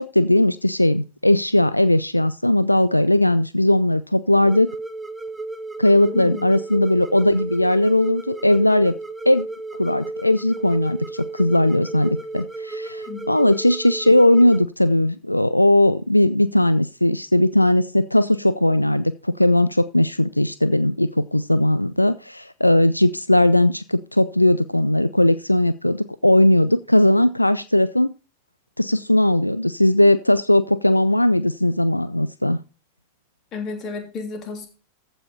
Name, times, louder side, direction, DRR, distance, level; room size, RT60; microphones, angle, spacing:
voice 1, 0.0-4.7 5.8-8.9 9.3-9.5 9.8-28.1 28.8-32.6, left 1 dB, 85° left, 15 dB, 0.4 m, -18 dB
sound 1, 4.4-14.6, right 3 dB, 5° right, 0.9 m, -33 dB
voice 2, 6.1-6.5 13.1-13.3 33.5-34.7, left 5 dB, 35° left, 4 dB, 3.1 m, -32 dB
14.5 x 5.5 x 4.2 m, 0.33 s
figure-of-eight pair, 90°, 0 cm